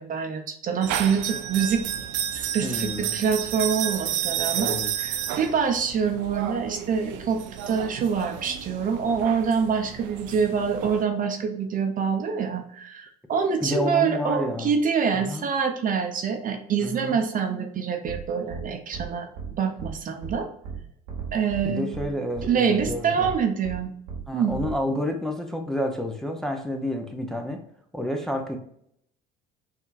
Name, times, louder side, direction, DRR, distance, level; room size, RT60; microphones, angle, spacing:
voice 1, 0.0-1.8 2.3-19.3 19.6-20.5 21.3-21.9 22.5-23.9 24.3-24.6, right 6 dB, 45° right, 5 dB, 0.9 m, -26 dB
sound 1, 0.8-11.0, right 10 dB, 70° right, 0.5 m, -31 dB
voice 2, 2.6-3.1 4.5-4.9 13.6-14.7 15.1-15.4 16.8-17.2 21.6-23.3 24.3-27.6 27.9-28.6, left 1 dB, ahead, 2 dB, 0.8 m, -29 dB
sound 2, 18.1-18.2 18.5-18.6 18.9-19.1 19.3-19.5 19.8-19.9 20.2-20.3 20.6-20.8 21.1-21.6 21.9-22.0 22.3-22.5 22.8-22.9 23.2-23.3 23.6-23.8 24.1-24.2 24.5-24.7, right 6 dB, 90° right, 1.4 m, -35 dB
5.6 x 2.8 x 2.5 m, 0.71 s
hypercardioid pair, 75°, 20 cm